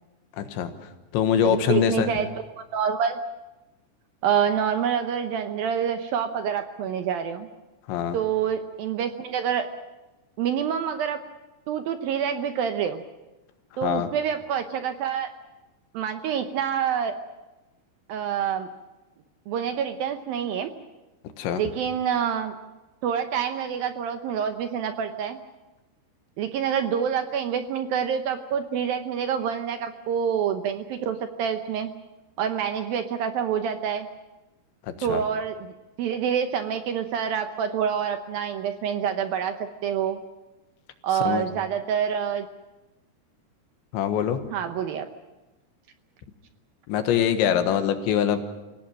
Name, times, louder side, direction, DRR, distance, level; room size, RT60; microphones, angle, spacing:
voice 1, 0.4-0.7 1.1-2.1 7.9-8.2 13.8-14.1 21.4-21.6 34.9-35.2 41.2-41.5 43.9-44.4 46.9-48.4, left 9 dB, 90° left, 8 dB, 3.7 m, -23 dB
voice 2, 1.4-2.3 2.6-3.2 4.2-7.5 8.1-9.7 10.4-11.2 11.7-13.0 13.8-15.3 15.9-17.1 18.1-18.7 19.5-20.7 21.6-22.5 23.0-25.4 26.4-31.9 32.4-34.1 35.0-40.2 41.0-42.5 44.5-45.1, right 8 dB, 75° right, 7 dB, 2.3 m, -27 dB
28.5 x 17.0 x 7.5 m, 1.1 s
omnidirectional pair, 5.1 m